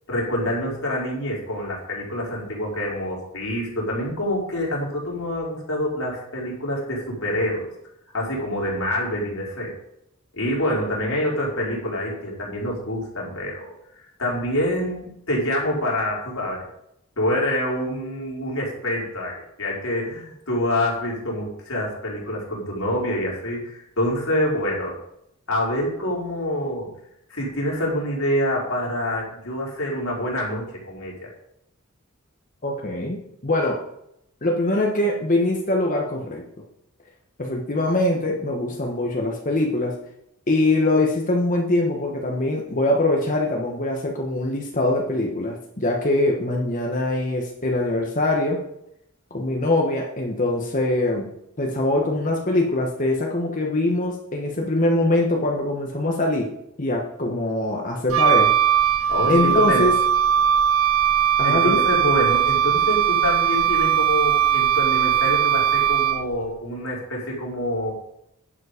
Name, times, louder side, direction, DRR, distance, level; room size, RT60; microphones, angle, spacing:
voice 1, 0.1-7.7 8.1-9.8 10.3-16.6 17.2-25.0 25.5-26.9 27.3-31.3 59.1-59.9 61.4-67.9, left 1 dB, 75° left, -4 dB, 4.5 m, -26 dB
voice 2, 32.6-33.8 34.4-36.4 37.4-40.0 40.5-48.6 49.3-51.3 51.6-58.6 59.3-59.9 61.4-61.9, left 2 dB, 40° left, 0 dB, 1.3 m, -23 dB
Wind instrument woodwind instrument, 58.1-66.4, right 9 dB, 75° right, 0.7 m, -19 dB
11.5 x 7.7 x 5.1 m, 0.79 s
head